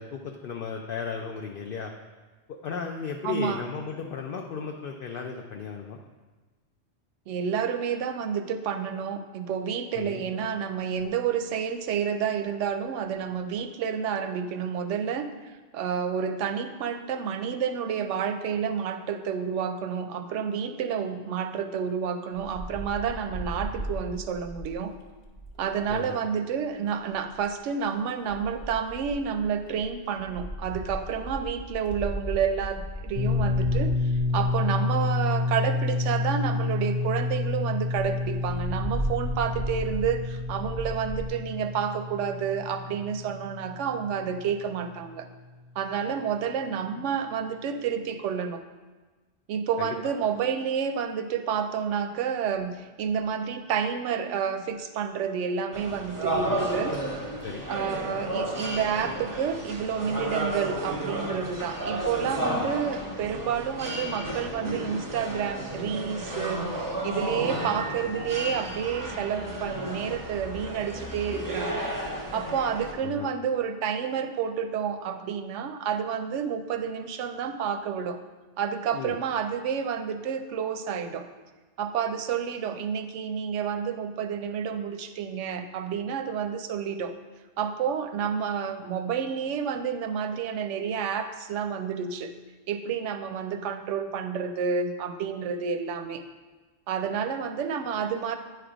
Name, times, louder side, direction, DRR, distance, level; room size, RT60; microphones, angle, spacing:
voice 1, 0.0-1.9 2.5-6.0 9.9-10.2 25.9-26.2 49.8-49.9 56.3-56.6 57.4-57.6 62.4-62.7 73.0-73.3 78.9-79.2, left 5 dB, 60° left, 2 dB, 0.6 m, -35 dB
voice 2, 3.2-3.6 7.3-15.3 15.7-24.9 25.6-45.3 45.8-48.6 49.5-56.9 57.7-66.6 67.0-71.9 72.3-78.2 78.6-81.3 81.8-87.1 87.6-92.3 92.7-96.2 96.9-98.4, right 7 dB, 85° right, 8 dB, 0.9 m, -30 dB
Wind, 22.4-26.0 27.1-27.6 28.3-35.3 35.9-36.0 36.2-36.3 36.6-36.7 37.0-37.1 37.3-37.5 37.9-41.3, right 1 dB, 25° left, 0.9 m, -36 dB
sound 1, 33.2-44.9, left 3 dB, 80° left, 1.0 m, -29 dB
sound 2, 55.7-72.9, right 1 dB, 20° right, 0.7 m, -32 dB
9.2 x 3.3 x 5.0 m, 1.3 s
omnidirectional pair, 1.2 m